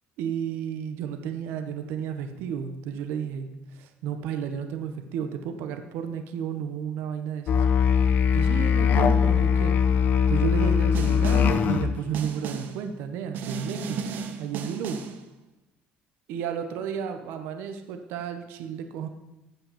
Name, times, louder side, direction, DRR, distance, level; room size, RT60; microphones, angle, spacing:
voice 1, 0.2-7.6 8.3-9.7 10.3-14.0 14.4-15.0 16.3-19.1, right 8 dB, 80° right, 7 dB, 1.4 m, -32 dB
Musical instrument, 7.5-12.0, left 7 dB, 55° left, 1.0 m, -21 dB
Snare drum, 10.9-11.6 12.1-12.8 13.3-15.2, right 6 dB, 60° right, 1.3 m, -35 dB
16.0 x 5.7 x 7.5 m, 0.96 s
cardioid pair, 130°, 4 cm